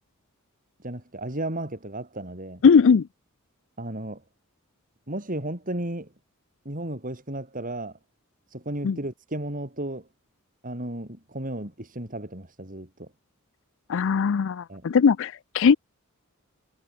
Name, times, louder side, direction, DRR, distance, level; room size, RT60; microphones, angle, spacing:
voice 1, 0.8-2.6 3.8-4.2 5.1-6.1 6.6-8.0 8.5-10.1 10.6-13.1 14.7-14.8, right 1 dB, 40° right, 5.0 m, -34 dB
voice 2, 2.6-3.1 8.8-9.0 13.9-15.8, left 6 dB, 60° left, 0.4 m, -19 dB
head